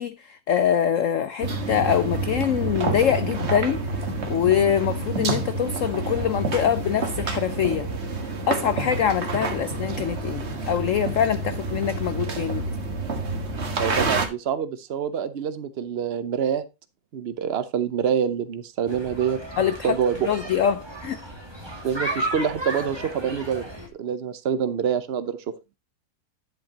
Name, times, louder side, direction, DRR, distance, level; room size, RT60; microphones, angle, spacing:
voice 1, 0.0-3.8 4.3-7.9 8.5-12.6 19.6-19.9 20.2-21.2, left 9 dB, 75° left, 0.7 m, -24 dB
sound 1, 1.4-14.3, right 3 dB, 40° right, 1.7 m, -28 dB
voice 2, 13.8-16.7 17.1-19.4 19.8-20.3 21.8-23.6 23.9-25.5, right 8 dB, 75° right, 0.5 m, -26 dB
sound 2, 18.9-23.9, right 1 dB, 15° right, 2.1 m, -34 dB
10.5 x 8.0 x 2.8 m
omnidirectional pair, 2.0 m